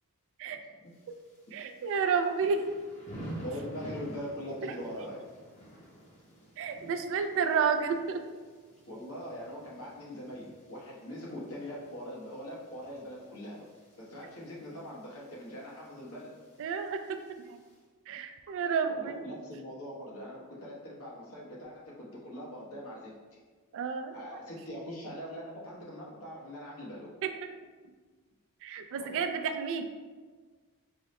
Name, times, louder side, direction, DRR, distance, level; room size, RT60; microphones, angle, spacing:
Thunder / Rain, 0.9-17.8, right 1 dB, 30° left, 0.8 m, -51 dB
voice 1, 1.5-2.6 6.6-8.2 16.6-17.2 17.5-17.6 18.1-19.2 23.7-24.1 27.2-27.3 28.6-29.9, right 6 dB, 60° right, 7 dB, 0.3 m, -30 dB
voice 2, 3.4-5.2 8.8-13.7 14.0-16.3 18.9-23.4 24.1-27.1 28.9-29.3, equal, 70° left, -5 dB, 0.9 m, -42 dB
4.7 x 2.0 x 2.9 m, 1.4 s
head